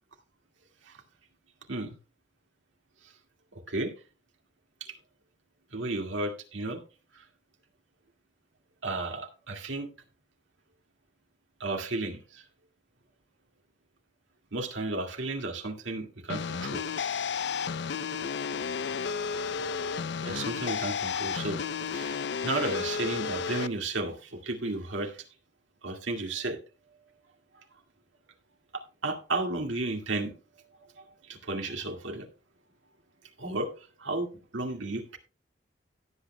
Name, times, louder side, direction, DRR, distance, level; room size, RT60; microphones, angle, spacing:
voice 1, 5.7-6.8 7.1-7.2 8.8-9.9 11.6-12.4 14.5-16.8 20.2-21.6 21.9-25.2 25.8-26.6 28.7-30.3 31.0-31.1 31.3-32.3 33.4-33.7 34.0-34.3 34.5-35.2, right 2 dB, 90° right, 2.1 m, -33 dB
sound 1, 16.3-23.7, left 6 dB, 65° left, 0.4 m, -32 dB
17.0 x 8.6 x 2.2 m
head